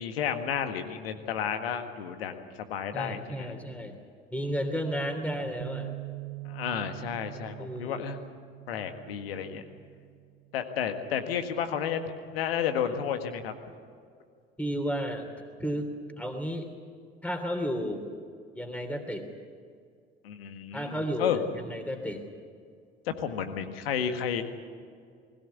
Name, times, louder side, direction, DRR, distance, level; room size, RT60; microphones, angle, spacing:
voice 1, 0.0-3.5 6.4-8.2 8.7-9.6 10.5-12.0 12.3-13.5 20.2-21.4 23.0-24.4, left 8 dB, 75° left, 8 dB, 1.8 m, -32 dB
voice 2, 2.9-4.0 4.3-5.9 7.6-8.0 14.6-15.3 15.6-15.9 16.2-16.7 17.2-18.0 18.5-19.3 20.7-21.4 21.7-22.2, equal, 5° left, 5 dB, 3.0 m, -32 dB
Bass guitar, 5.6-11.9, right 21 dB, 55° right, 0.8 m, -44 dB
21.0 x 16.5 x 8.5 m, 2.1 s
figure-of-eight pair, 60°, 30 cm